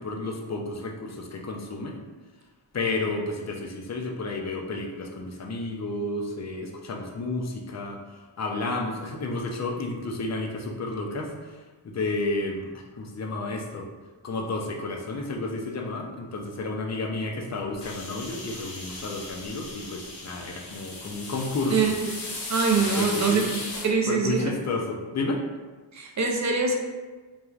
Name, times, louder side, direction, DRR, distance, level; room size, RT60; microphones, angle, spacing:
voice 1, 0.0-2.0 2.7-8.0 8.4-11.6 11.8-13.9 14.2-21.9 22.8-23.5 24.1-25.4, left 2 dB, 35° left, 1 dB, 0.4 m, -31 dB
sound 1, 17.8-23.9, left 2 dB, 55° left, 0.8 m, -36 dB
voice 2, 21.7-22.1 22.5-23.5 23.8-24.5 25.9-26.7, right 5 dB, 40° right, 1 dB, 0.4 m, -24 dB
3.1 x 2.2 x 2.3 m, 1.3 s
wide cardioid pair, 75°, 49 cm